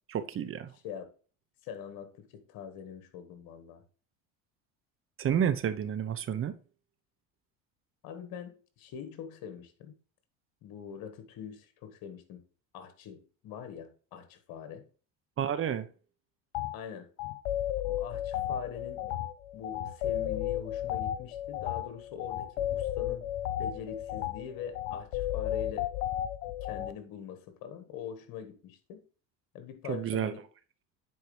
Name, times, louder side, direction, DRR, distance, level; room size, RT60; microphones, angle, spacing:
voice 1, 0.1-0.7 5.2-6.5 15.4-15.9 29.9-30.3, right 9 dB, 35° right, 0.8 m, -30 dB
voice 2, 1.6-3.8 8.0-9.9 10.6-12.4 12.7-14.9 16.7-17.1 17.8-19.1 19.5-23.3 23.6-25.9 26.6-29.0 29.5-30.4, left 8 dB, 60° left, 1.6 m, -43 dB
sound 1, 16.5-16.7 17.2-26.9, left 12 dB, 85° left, 0.6 m, -33 dB
9.6 x 4.4 x 3.2 m
supercardioid pair, 90°, 39 cm